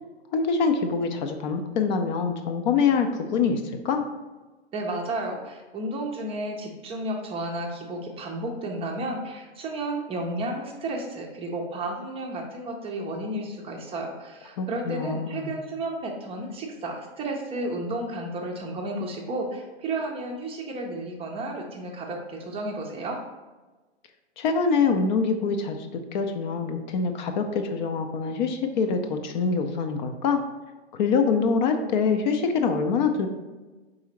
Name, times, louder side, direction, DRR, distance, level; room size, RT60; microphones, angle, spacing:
voice 1, 0.3-4.0 14.6-15.5 24.4-30.4 30.9-33.3, left 5 dB, 45° left, 6 dB, 0.5 m, -25 dB
voice 2, 4.7-23.2, right 2 dB, 20° right, 1 dB, 0.5 m, -32 dB
4.7 x 3.7 x 3.0 m, 1.2 s
hypercardioid pair, 110°, 33 cm